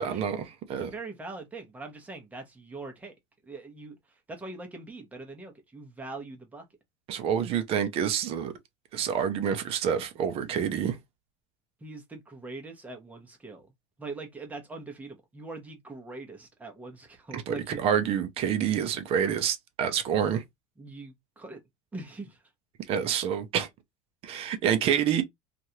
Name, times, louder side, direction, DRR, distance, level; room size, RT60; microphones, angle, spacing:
voice 1, 0.0-0.9 7.1-8.5 8.9-11.0 17.3-20.4 22.9-23.7 24.2-25.2, right 8 dB, 40° right, 0.6 m, -27 dB
voice 2, 0.8-3.1 3.4-4.0 4.3-6.6 11.8-13.7 14.0-17.8 20.8-21.6 21.9-22.4, right 3 dB, 10° right, 0.8 m, -42 dB
3.1 x 2.5 x 2.8 m
cardioid pair, 155°, 16 cm